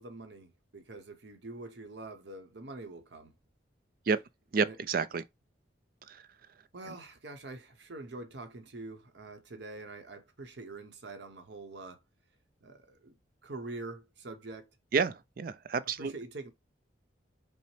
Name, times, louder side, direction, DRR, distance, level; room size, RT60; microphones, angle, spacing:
voice 1, 0.0-3.3 4.6-4.8 6.7-12.0 12.6-13.2 13.4-14.7 16.0-16.5, right 2 dB, 65° right, 0.9 m, -45 dB
voice 2, 4.5-5.2 6.1-6.2 14.9-16.1, right 5 dB, 50° right, 0.4 m, -29 dB
5.4 x 2.1 x 3.2 m
head